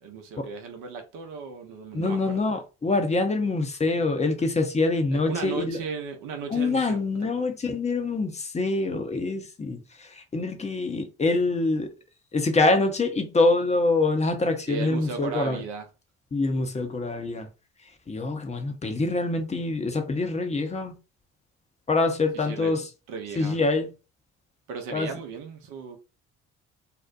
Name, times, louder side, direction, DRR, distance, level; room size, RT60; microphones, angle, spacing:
voice 1, 0.0-2.5 5.1-7.4 14.7-15.9 22.4-23.6 24.7-26.0, right 5 dB, 65° right, 0.8 m, -36 dB
voice 2, 1.9-5.8 6.5-11.9 12.3-15.6 16.3-17.5 18.1-21.0 21.9-22.8 23.4-23.9 24.9-25.1, left 3 dB, 20° left, 0.6 m, -25 dB
2.6 x 2.0 x 2.5 m
hypercardioid pair, 50°, 35 cm